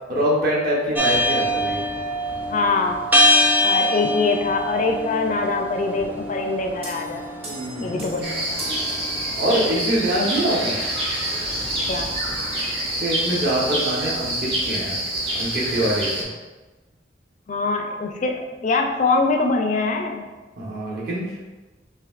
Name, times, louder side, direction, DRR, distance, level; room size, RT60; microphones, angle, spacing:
voice 1, 0.1-1.8 7.4-7.9 9.4-10.8 13.0-15.0 15.4-16.3 20.6-21.4, right 1 dB, 55° right, -4 dB, 1.1 m, -24 dB
sound 1, 0.9-13.1, left 1 dB, 10° right, 0.5 m, -25 dB
voice 2, 2.5-3.1 3.6-7.3 7.8-8.6 11.9-12.1 17.5-20.3, left 3 dB, 45° left, 3 dB, 0.4 m, -23 dB
sound 2, 6.8-9.8, right 2 dB, 35° right, 0.9 m, -38 dB
sound 3, 8.2-16.2, right 1 dB, 75° right, 1.3 m, -26 dB
5.9 x 2.8 x 2.4 m, 1.2 s
head